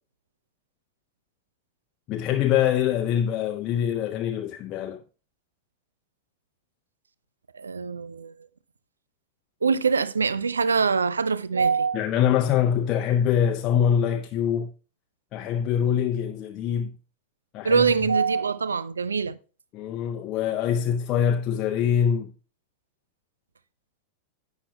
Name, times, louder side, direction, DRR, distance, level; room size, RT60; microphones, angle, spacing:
voice 1, 2.1-5.0 11.9-14.7 15.3-17.0 17.5-17.8 19.7-22.3, left 9 dB, 35° left, 0.5 m, -24 dB
voice 2, 7.5-8.5 9.6-12.0 17.6-19.4, right 5 dB, 75° right, 0.4 m, -24 dB
11.5 x 8.1 x 2.2 m
figure-of-eight pair, 90°, 0 cm